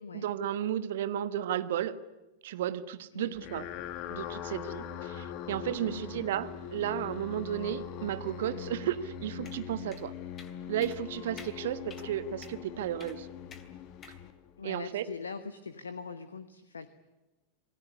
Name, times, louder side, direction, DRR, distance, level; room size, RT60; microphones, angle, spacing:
voice 1, 0.1-2.0 2.4-3.7 4.1-10.1 10.7-13.3 14.6-15.0, right 10 dB, 55° right, 13 dB, 1.3 m, -33 dB
sound 1, 3.3-14.8, left 8 dB, 40° left, 1.9 m, -42 dB
voice 2, 5.9-6.3 11.6-11.7 12.0-12.1 14.6-16.9, left 5 dB, 70° left, 12 dB, 1.2 m, -42 dB
sound 2, 9.5-9.6 9.9-10.0 10.4-10.5 10.8-11.0 11.4-11.5 11.9-12.1 12.4-12.6 13.0-13.2 13.5-13.7 14.0-14.2, left 6 dB, 25° left, 2.8 m, -50 dB
27.0 x 19.5 x 9.7 m, 1.1 s
figure-of-eight pair, 90°, 0 cm